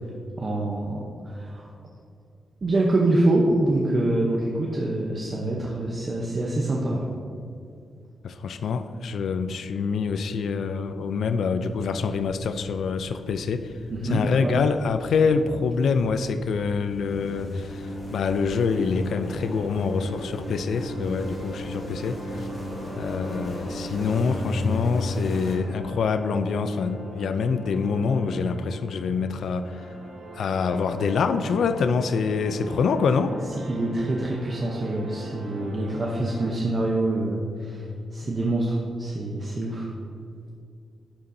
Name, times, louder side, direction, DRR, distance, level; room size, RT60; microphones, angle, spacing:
voice 1, 0.4-1.7 2.6-7.1 13.9-14.6 33.6-39.9, right 2 dB, 35° right, -2 dB, 0.8 m, -25 dB
voice 2, 8.2-13.7 14.1-22.5 23.0-29.9 30.3-33.4, left 5 dB, 75° left, 10 dB, 0.4 m, -26 dB
sound 1, 11.7-25.6, left 1 dB, 40° left, 1.2 m, -36 dB
sound 2, 17.7-36.5, right 1 dB, 90° right, 1.3 m, -42 dB
11.0 x 6.9 x 2.7 m, 2.4 s
wide cardioid pair, 140°, 0 cm